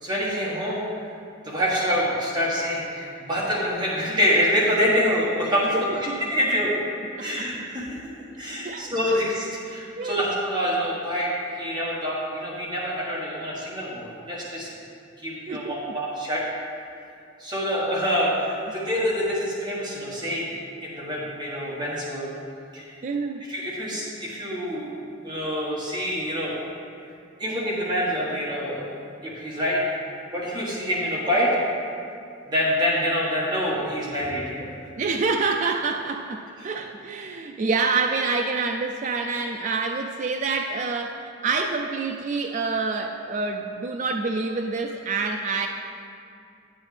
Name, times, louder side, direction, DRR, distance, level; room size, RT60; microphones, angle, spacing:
voice 1, 0.0-0.8 1.4-5.8 6.2-6.7 7.2-8.0 8.4-11.3 11.6-14.7 15.2-16.4 17.4-22.3 22.7-23.0 23.5-25.0 25.2-26.6 27.4-28.8 29.2-29.8 30.3-31.6 32.5-34.7 36.6-36.7, equal, 20° right, -6 dB, 1.4 m, -26 dB
voice 2, 5.7-6.1 7.2-7.5 8.6-9.1 10.0-10.2 15.5-15.9 23.0-23.4 35.0-45.7, right 4 dB, 35° right, 3 dB, 0.3 m, -27 dB
9.5 x 8.9 x 3.3 m, 2.4 s
head